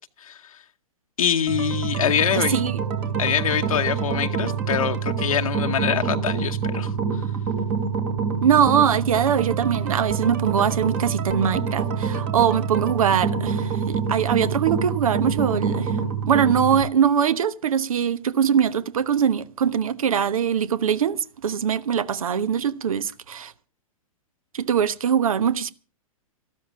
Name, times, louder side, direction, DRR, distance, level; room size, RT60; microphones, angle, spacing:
voice 1, 0.2-0.6 1.2-2.6 3.2-7.3, left 9 dB, 70° left, 0.9 m, -25 dB
sound 1, 1.5-16.8, right 6 dB, 45° right, 3.0 m, -26 dB
voice 2, 2.3-2.8 8.4-15.9 16.3-23.5 24.5-25.7, right 8 dB, 70° right, 1.0 m, -22 dB
13.5 x 12.5 x 6.0 m
figure-of-eight pair, 110°, 19 cm